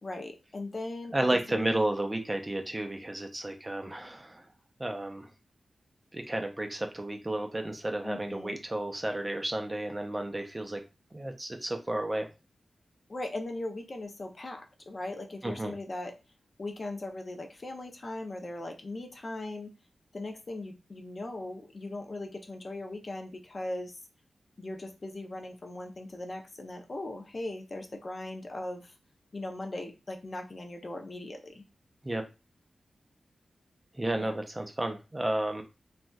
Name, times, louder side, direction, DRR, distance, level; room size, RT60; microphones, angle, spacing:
voice 1, 0.0-1.7 8.0-8.6 13.1-16.1 16.6-19.7 20.1-24.0 24.6-28.9 29.3-31.6 34.2-34.3, left 2 dB, 40° left, 3 dB, 0.5 m, -39 dB
voice 2, 1.1-4.5 4.8-5.3 6.1-10.8 11.1-12.3 15.4-15.7 32.0-32.2 33.9-35.6, right 1 dB, 20° right, 5 dB, 0.4 m, -32 dB
3.2 x 2.5 x 2.3 m, 0.29 s
wide cardioid pair, 100°, 0 cm